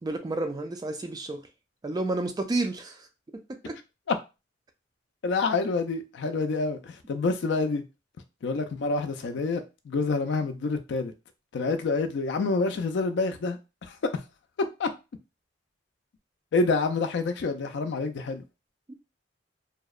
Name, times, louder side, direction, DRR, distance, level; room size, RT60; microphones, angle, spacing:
voice 1, 0.0-1.4 1.8-3.1 3.3-3.8, right 2 dB, 20° right, 0.3 m, -31 dB
voice 2, 5.2-7.8 8.4-11.1 11.5-14.0 14.8-14.9 16.5-18.4, left 3 dB, 65° left, 0.4 m, -27 dB
2.7 x 2.0 x 2.3 m
head